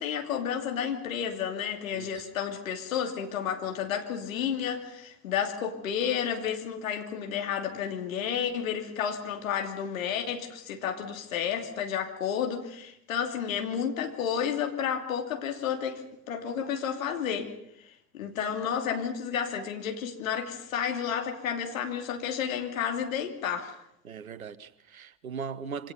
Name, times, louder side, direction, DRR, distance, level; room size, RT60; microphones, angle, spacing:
voice 1, 0.0-17.5 17.8-23.8, left 8 dB, 70° left, 3.0 m, -31 dB
voice 2, 1.9-2.3 24.0-25.9, right 6 dB, 80° right, 1.1 m, -39 dB
27.0 x 26.0 x 5.5 m
figure-of-eight pair, 60°, 41 cm